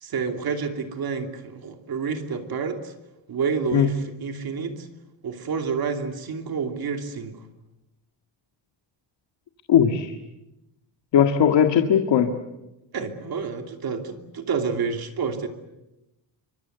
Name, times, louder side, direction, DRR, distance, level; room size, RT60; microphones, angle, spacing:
voice 1, 0.0-2.9 3.3-4.9 5.2-7.4 12.9-15.5, right 5 dB, 50° right, 5 dB, 2.9 m, -29 dB
voice 2, 9.7-10.1 11.1-12.3, left 8 dB, 65° left, 6 dB, 1.9 m, -18 dB
28.5 x 25.0 x 8.2 m, 0.95 s
wide cardioid pair, 175°, 46 cm